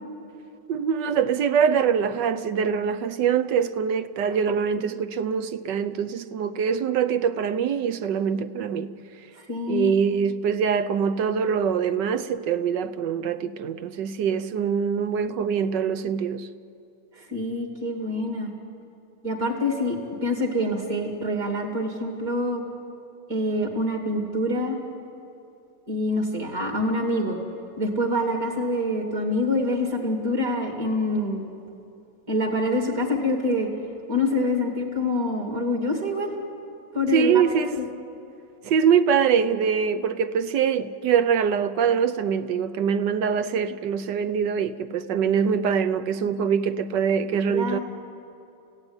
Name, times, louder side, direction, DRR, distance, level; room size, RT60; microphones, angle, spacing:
voice 1, 0.7-8.9 9.7-16.5 37.1-37.8 38.6-47.8, right 7 dB, 70° right, 1.4 m, -24 dB
voice 2, 9.4-9.9 17.2-18.5 19.2-22.6 23.3-24.8 25.9-27.4 27.8-31.5 32.3-33.7 34.1-36.3 36.9-37.4 37.7-37.8 47.5-47.8, left 1 dB, 50° right, 3.1 m, -26 dB
29.5 x 16.5 x 9.7 m
omnidirectional pair, 2.0 m